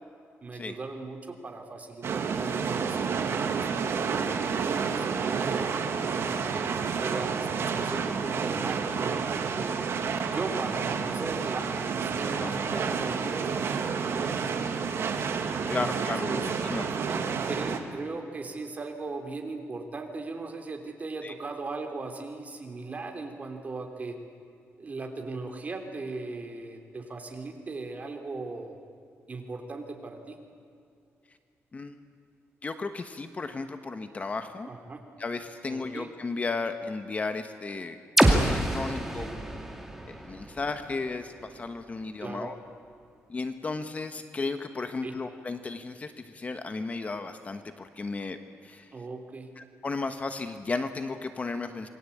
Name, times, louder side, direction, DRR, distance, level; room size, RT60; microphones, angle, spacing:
voice 1, 0.4-3.7 4.7-5.7 6.0-6.4 7.0-9.8 10.3-14.5 14.7-15.0 15.6-16.4 17.1-24.2 24.8-28.8 29.3-30.4 34.7-35.0 35.7-36.1 39.0-39.3 42.2-42.5 45.0-45.2 48.9-49.5, right 3 dB, 30° right, 3 dB, 3.3 m, -38 dB
sound 1, 2.0-17.8, right 6 dB, 60° right, 2.2 m, -30 dB
voice 2, 12.3-12.8 15.7-16.9 21.2-21.3 31.7-31.9 32.6-34.7 35.2-39.2 40.1-42.6 43.3-48.4 48.6-48.9 49.6-51.9, left 3 dB, 30° left, 8 dB, 1.2 m, -34 dB
sound 2, 38.2-42.0, right 1 dB, 5° right, 2.4 m, -27 dB
27.0 x 22.0 x 8.5 m, 2.4 s
wide cardioid pair, 145°, 5 cm